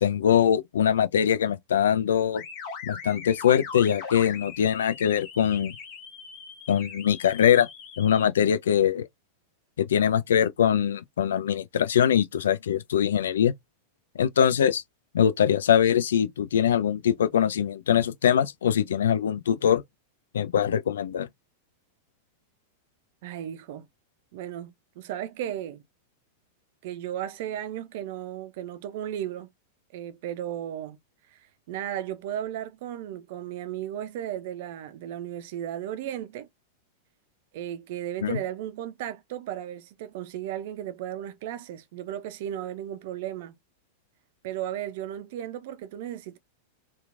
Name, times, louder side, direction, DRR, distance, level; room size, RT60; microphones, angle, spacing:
voice 1, 0.0-2.4 2.8-5.7 6.7-7.7 8.0-9.1 9.8-13.5 14.2-14.8 15.1-19.8 20.3-21.3 38.2-38.4, left 9 dB, 70° left, 0.3 m, -22 dB
sound 1, 2.3-8.3, left 6 dB, 50° left, 1.1 m, -40 dB
voice 2, 23.2-23.9 24.3-25.8 26.8-29.5 29.9-31.0 31.3-36.5 37.5-43.6 44.4-46.4, right 11 dB, 55° right, 0.4 m, -35 dB
2.9 x 2.2 x 2.4 m
figure-of-eight pair, 95°, 0 cm